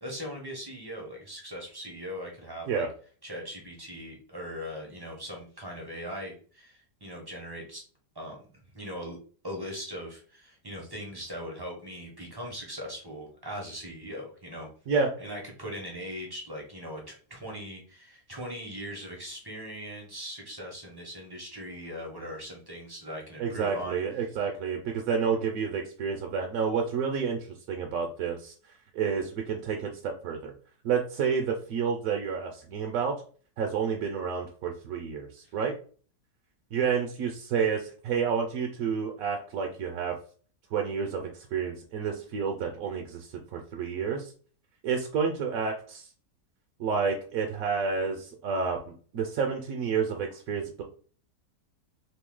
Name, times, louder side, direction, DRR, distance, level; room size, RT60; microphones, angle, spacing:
voice 1, 0.0-2.9 3.2-7.8 8.1-8.5 8.7-9.2 9.4-14.7 15.2-24.0, equal, 25° right, -1 dB, 0.5 m, -40 dB
voice 2, 23.4-30.5 30.8-33.1 33.6-35.7 36.7-40.2 40.7-44.3 44.8-46.1 46.8-50.8, right 6 dB, 65° right, 2 dB, 0.9 m, -30 dB
3.0 x 2.7 x 3.7 m, 0.42 s
omnidirectional pair, 1.8 m